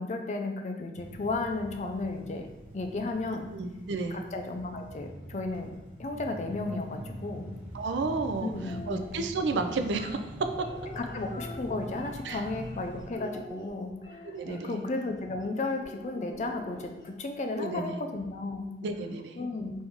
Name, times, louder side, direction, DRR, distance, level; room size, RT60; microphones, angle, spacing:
voice 1, 0.0-2.5 2.7-3.5 4.1-5.7 6.0-7.5 8.4-9.2 11.0-18.7 19.4-19.8, left 2 dB, 40° left, 4 dB, 0.4 m, -34 dB
sound 1, 0.9-13.1, equal, 40° right, 0.9 m, -44 dB
voice 2, 3.5-4.2 7.7-8.5 8.9-10.2 12.3-12.4 14.3-14.8 17.6-18.0 18.8-19.4, right 3 dB, 80° right, 7 dB, 0.4 m, -31 dB
sound 2, 8.5-9.1 9.9-12.8 13.1-14.6 15.8-17.2, equal, 25° left, 1.0 m, -44 dB
4.6 x 2.6 x 3.6 m, 1.1 s
head